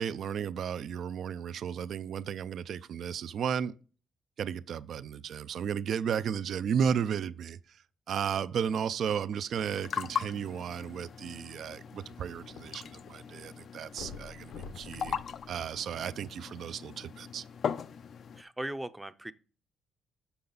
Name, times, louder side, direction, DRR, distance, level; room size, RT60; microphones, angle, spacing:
voice 1, 0.0-3.8 4.4-7.6 8.1-15.2 15.5-17.4, right 8 dB, 65° right, 0.4 m, -34 dB
sound 1, 9.5-18.4, left 7 dB, 55° left, 0.4 m, -39 dB
sound 2, 11.7-13.1 13.4-13.5 13.9-16.5 17.2-17.3, left 5 dB, 85° left, 0.9 m, -47 dB
voice 2, 18.4-19.3, right 1 dB, 10° right, 0.5 m, -38 dB
7.0 x 5.6 x 3.9 m
cardioid pair, 90°, 0 cm